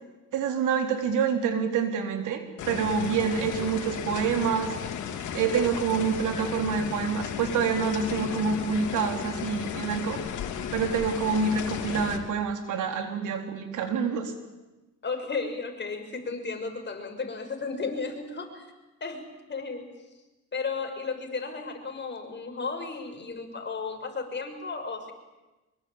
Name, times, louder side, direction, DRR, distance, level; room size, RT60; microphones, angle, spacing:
voice 1, 0.3-4.7 5.3-10.2 10.7-14.3, right 6 dB, 85° right, 5 dB, 3.8 m, -27 dB
sound 1, 2.6-12.2, left 8 dB, 75° left, 3.2 m, -34 dB
voice 2, 15.0-18.7 19.0-19.2 19.5-19.9 20.5-25.1, left 4 dB, 35° left, 4 dB, 6.1 m, -34 dB
24.5 x 23.5 x 8.9 m, 1.1 s
cardioid pair, 90°, 30 cm